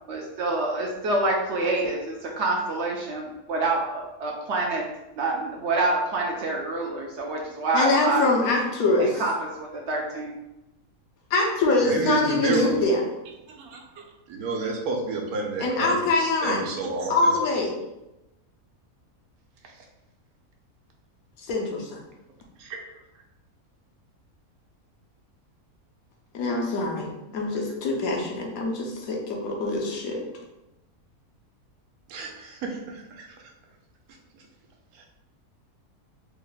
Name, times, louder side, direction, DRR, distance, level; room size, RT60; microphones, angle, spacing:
voice 1, 0.1-4.8 5.2-8.3 9.0-10.3, right 2 dB, 65° right, -1 dB, 0.7 m, -27 dB
voice 2, 7.7-9.2 11.3-13.0 15.6-16.6 17.1-17.7 21.4-22.0 26.3-27.1 27.3-30.2, left 2 dB, 75° left, -1 dB, 1.2 m, -24 dB
voice 3, 11.8-12.8 13.5-17.4 19.6-19.9 22.6-22.9 32.1-33.5 34.3-34.4 34.9-35.1, right 4 dB, 85° right, 1 dB, 1.2 m, -31 dB
3.4 x 2.1 x 3.8 m, 0.94 s
omnidirectional pair, 1.5 m